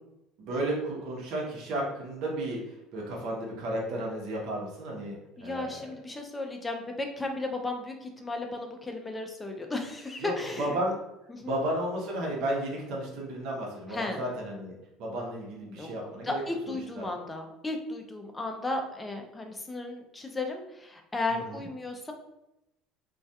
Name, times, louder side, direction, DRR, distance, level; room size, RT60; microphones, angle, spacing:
voice 1, 0.4-5.9 10.2-10.3 10.6-11.0 11.4-16.4 17.0-17.1 21.5-21.6, right 1 dB, 65° right, -2 dB, 0.7 m, -33 dB
voice 2, 5.4-10.8 11.3-11.6 13.9-14.2 15.8-15.9 16.2-22.1, left 2 dB, 15° left, 3 dB, 0.4 m, -35 dB
2.3 x 2.2 x 2.7 m, 0.89 s
cardioid pair, 125°, 0 cm